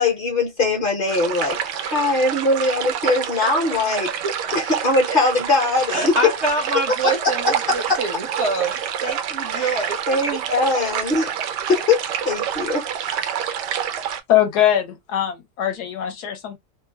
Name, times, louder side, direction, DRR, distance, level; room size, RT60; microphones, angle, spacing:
voice 1, 0.0-4.1 4.5-6.3 7.0-7.1 7.7-8.0 9.5-11.3 11.7-13.2, left 3 dB, 40° left, 0.8 m, -21 dB
sound 1, 1.1-14.2, right 9 dB, 80° right, 1.2 m, -27 dB
voice 2, 5.9-10.4, right 2 dB, 55° right, 0.8 m, -26 dB
voice 3, 14.3-16.6, left 11 dB, 70° left, 1.2 m, -21 dB
3.1 x 2.2 x 2.2 m
omnidirectional pair, 1.9 m